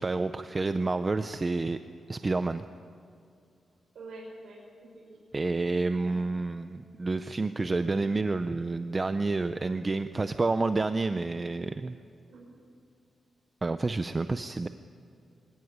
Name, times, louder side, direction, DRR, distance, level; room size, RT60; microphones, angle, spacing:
voice 1, 0.0-1.8 2.1-2.6 5.3-12.0 13.6-14.7, right 3 dB, 25° right, 10 dB, 0.5 m, -29 dB
voice 2, 3.9-5.2 6.0-6.5 7.2-7.3 12.3-12.6, right 2 dB, 65° right, -4 dB, 5.9 m, -47 dB
23.5 x 17.5 x 9.9 m, 2.4 s
wide cardioid pair, 170°, 0 cm